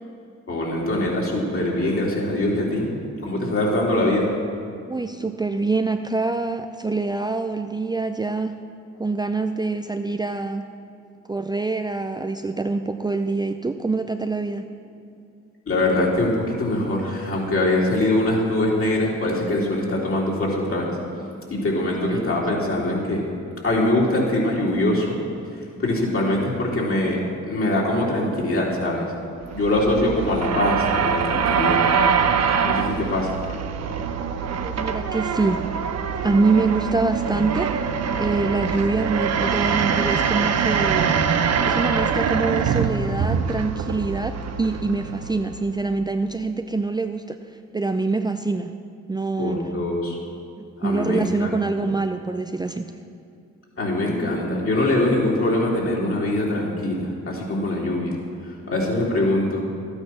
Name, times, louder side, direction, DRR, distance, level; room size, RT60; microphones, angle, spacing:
voice 1, 0.5-2.9 3.2-4.3 15.7-20.9 21.5-23.2 23.6-25.2 25.8-27.2 27.5-29.1 29.5-31.8 32.6-33.4 49.4-50.2 50.8-51.5 51.8-51.9 53.8-58.1 58.4-59.6, left 1 dB, 45° left, -3 dB, 3.4 m, -23 dB
voice 2, 4.9-8.6 9.0-10.7 11.3-14.7 22.0-22.4 34.6-35.7 36.2-37.9 38.2-41.1 41.7-47.4 47.7-48.7 49.1-49.6 50.6-52.9, right 3 dB, 15° right, 6 dB, 0.5 m, -25 dB
sound 1, 29.4-45.8, right 6 dB, 60° right, 0.9 m, -24 dB
12.5 x 8.9 x 5.9 m, 2.4 s
supercardioid pair, 60°, 29 cm